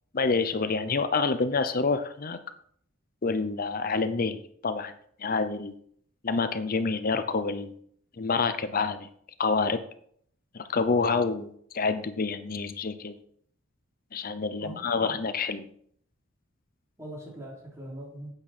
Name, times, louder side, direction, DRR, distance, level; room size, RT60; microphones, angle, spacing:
voice 1, 0.1-2.4 3.2-4.9 5.2-5.7 6.2-7.7 8.2-9.1 9.4-9.8 10.5-13.2 14.1-15.7, left 4 dB, 45° left, 11 dB, 0.7 m, -27 dB
voice 2, 14.6-15.1 17.0-18.3, right 1 dB, 15° right, -3 dB, 3.2 m, -42 dB
10.0 x 9.0 x 4.3 m, 0.63 s
head